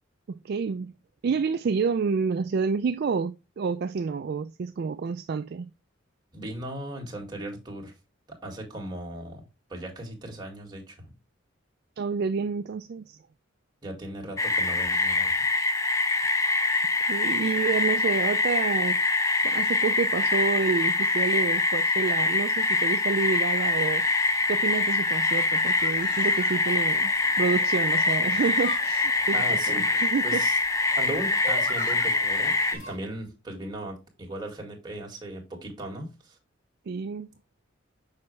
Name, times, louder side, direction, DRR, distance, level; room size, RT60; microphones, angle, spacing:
voice 1, 0.3-0.9 1.2-5.7 12.0-13.2 17.0-19.0 19.4-24.1 24.5-30.4 36.9-37.3, right 5 dB, 50° right, 0.3 m, -29 dB
voice 2, 6.3-7.9 8.4-9.4 9.7-11.1 13.8-15.5 29.3-29.9 30.2-30.6 31.0-36.4, right 1 dB, 20° right, 1.9 m, -37 dB
sound 1, 14.4-32.8, left 3 dB, 15° left, 0.5 m, -24 dB
sound 2, 23.4-33.0, left 1 dB, 40° left, 3.8 m, -45 dB
6.6 x 5.2 x 3.2 m
head